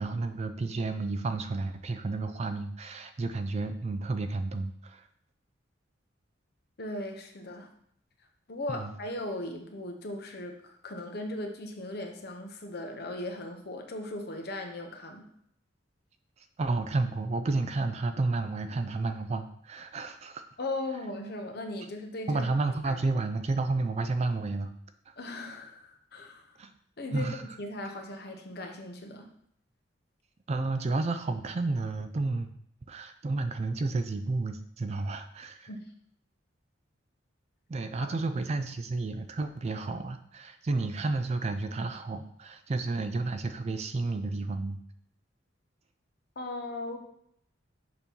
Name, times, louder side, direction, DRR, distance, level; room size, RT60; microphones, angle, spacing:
voice 1, 0.0-5.1 8.7-8.9 16.6-20.4 22.3-24.7 25.1-25.2 26.6-26.7 27.1-27.5 30.5-32.5 32.9-35.7 37.7-44.8, right 3 dB, 35° right, 9 dB, 0.3 m, -31 dB
voice 2, 6.8-7.7 8.5-15.3 20.6-22.5 22.9-23.0 25.2-26.5 27.0-29.3 35.7-35.9 38.0-38.1 46.4-47.0, left 2 dB, 55° left, 3 dB, 0.9 m, -38 dB
6.7 x 2.9 x 5.3 m, 0.70 s
head